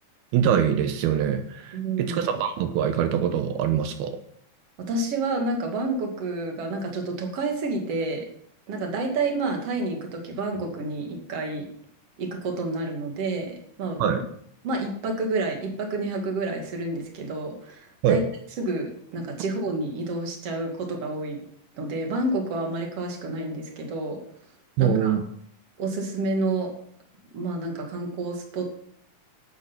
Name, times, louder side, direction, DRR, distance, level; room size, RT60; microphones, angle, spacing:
voice 1, 0.3-4.2 14.0-14.2 18.0-18.2 24.8-25.2, right 8 dB, 90° right, 8 dB, 3.0 m, -24 dB
voice 2, 1.7-2.2 4.9-8.3 8.7-11.7 12.2-14.2 14.6-18.2 18.6-21.4 21.7-24.2 24.8-25.2 25.8-26.7 27.3-28.8, right 2 dB, 45° right, 2 dB, 3.0 m, -29 dB
12.0 x 8.9 x 5.8 m, 0.65 s
omnidirectional pair, 4.3 m